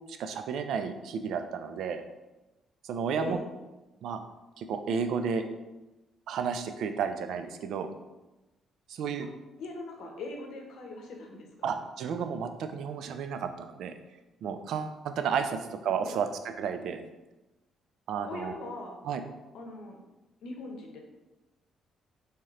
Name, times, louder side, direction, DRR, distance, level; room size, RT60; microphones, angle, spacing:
voice 1, 0.1-2.0 2.8-3.4 4.0-4.2 4.6-5.4 6.3-7.9 8.9-9.3 11.6-13.9 14.4-17.0 18.1-18.5 19.0-19.2, right 6 dB, 75° right, 8 dB, 0.3 m, -32 dB
voice 2, 9.6-11.8 15.8-16.2 18.3-19.0 19.5-20.0 20.4-21.0, left 2 dB, 75° left, 2 dB, 0.7 m, -41 dB
3.2 x 2.8 x 3.5 m, 1.0 s
cardioid pair, 110°, 0 cm